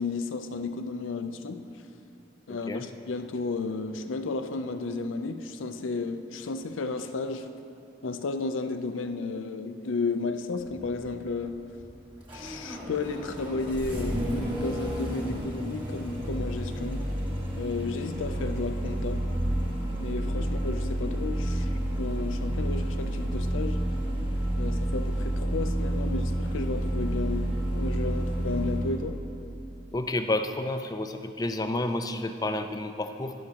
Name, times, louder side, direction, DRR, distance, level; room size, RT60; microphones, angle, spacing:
voice 1, 0.0-1.6 2.5-7.5 8.0-11.6 12.3-17.1 17.6-19.3 20.0-21.7 22.0-23.9 24.6-29.2, left 3 dB, 90° left, 9 dB, 0.5 m, -33 dB
voice 2, 2.5-2.8 20.4-20.5 29.9-33.3, left 2 dB, 20° left, 8 dB, 0.4 m, -30 dB
Engine starting, 10.6-29.0, equal, 25° right, 1.8 m, -30 dB
12.5 x 11.0 x 2.9 m, 2.7 s
head